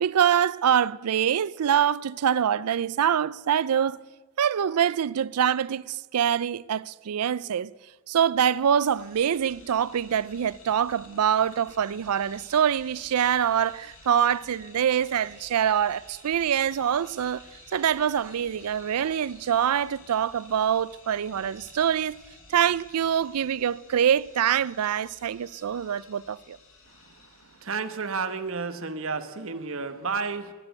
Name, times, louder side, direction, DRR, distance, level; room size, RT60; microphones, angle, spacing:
voice 1, 0.0-4.0 4.4-7.7 8.1-17.4 17.7-22.2 22.5-26.6, right 9 dB, 90° right, 0.4 m, -25 dB
sound 1, 8.3-28.0, left 4 dB, 65° left, 2.2 m, -53 dB
sound 2, 12.0-19.5, right 4 dB, 45° right, 6.8 m, -57 dB
voice 2, 27.6-30.5, right 4 dB, 65° right, 1.1 m, -31 dB
16.0 x 10.5 x 8.0 m
head